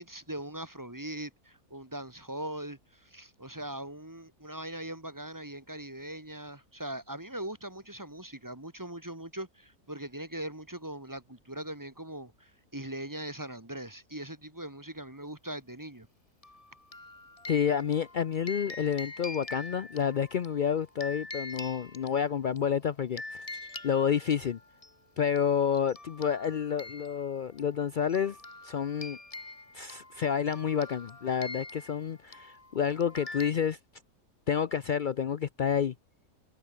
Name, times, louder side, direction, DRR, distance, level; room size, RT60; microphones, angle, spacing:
voice 1, 0.0-16.1, right 1 dB, 10° right, 1.7 m, -40 dB
sound 1, 16.4-22.6 23.2-24.9 25.4-25.5 25.7-33.5, left 2 dB, 20° left, 2.3 m, -45 dB
voice 2, 17.5-24.6 25.2-28.4 28.6-29.2 29.7-33.8 34.5-35.9, left 8 dB, 70° left, 0.4 m, -29 dB
omnidirectional pair, 1.7 m